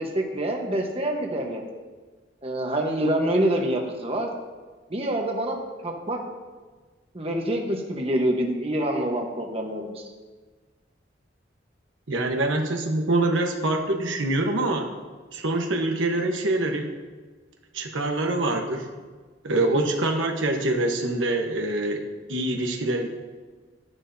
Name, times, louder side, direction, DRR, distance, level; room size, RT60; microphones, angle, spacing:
voice 1, 0.0-1.6 2.4-4.3 4.9-5.6 5.8-6.2 7.1-10.0, right 1 dB, 30° right, 1 dB, 1.2 m, -26 dB
voice 2, 12.1-14.9 15.3-16.9 17.7-18.9 19.4-23.1, right 2 dB, 85° right, 3 dB, 1.1 m, -25 dB
12.5 x 10.5 x 2.7 m, 1.4 s
head